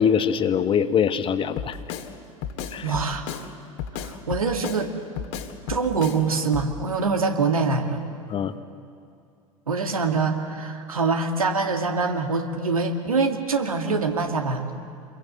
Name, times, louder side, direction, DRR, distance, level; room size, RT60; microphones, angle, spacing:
voice 1, 0.0-1.8 2.7-2.8 8.3-8.5, left 7 dB, 30° left, 11 dB, 1.0 m, -22 dB
Drum kit, 1.6-2.1 2.4-3.5 3.8-4.8 5.2-6.2 6.5-6.7, left 8 dB, 50° left, 2.0 m, -33 dB
voice 2, 2.8-3.2 3.9-4.9 5.7-8.0 9.7-14.7, right 4 dB, 80° right, 4 dB, 2.1 m, -24 dB
27.5 x 22.0 x 7.8 m, 2.4 s
figure-of-eight pair, 75°, 18 cm